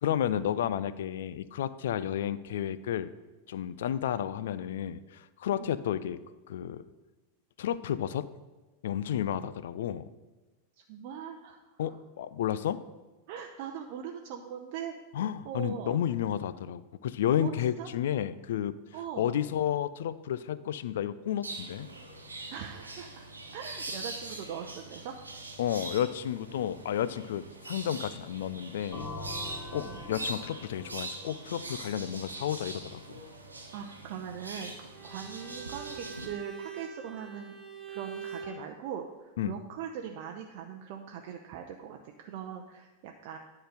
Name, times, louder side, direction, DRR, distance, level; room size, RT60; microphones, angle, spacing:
voice 1, 0.0-3.1 3.5-6.2 6.5-6.8 7.6-8.3 8.8-10.1 11.8-12.8 15.1-18.7 19.2-21.9 25.6-29.0 29.7-33.2 39.4-39.5, left 10 dB, 60° left, 16 dB, 0.4 m, -31 dB
voice 2, 10.9-11.9 13.3-14.9 15.4-16.0 17.4-17.9 18.9-19.4 22.5-23.2 23.5-25.2 29.7-30.0 33.7-37.6 37.9-43.4, right 8 dB, 45° right, 3 dB, 0.6 m, -41 dB
sound 1, 21.4-36.3, right 2 dB, 80° right, 1.1 m, -43 dB
sound 2, 28.9-32.6, left 2 dB, 40° left, 1.7 m, -44 dB
Bowed string instrument, 34.9-38.6, right 5 dB, 15° right, 1.7 m, -44 dB
10.0 x 3.9 x 6.3 m, 1.2 s
figure-of-eight pair, 90°, 0 cm